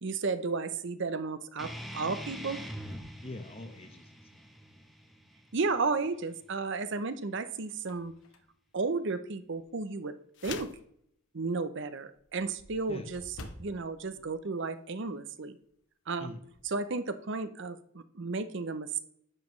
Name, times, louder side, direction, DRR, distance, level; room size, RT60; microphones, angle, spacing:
voice 1, 0.0-2.6 5.5-8.1 8.7-10.1 10.4-10.7 11.3-13.2 13.6-15.6 16.1-16.3 16.7-19.0, right 4 dB, 55° right, 11 dB, 0.6 m, -33 dB
sound 1, 1.6-6.6, equal, ahead, 0.9 m, -44 dB
sound 2, 2.8-4.1 4.7-4.8 6.2-6.8 7.2-9.9 10.3-10.5 10.8-10.9 11.2-11.3 11.5-15.3 15.6-15.8 16.1-16.7, left 1 dB, 75° left, 1.1 m, -53 dB
voice 2, 3.2-5.2 12.9-13.1 16.2-16.5, left 2 dB, 25° left, 8 dB, 0.9 m, -45 dB
sound 3, 10.3-10.9, left 7 dB, 55° left, 0.6 m, -41 dB
11.0 x 7.3 x 3.1 m, 0.68 s
head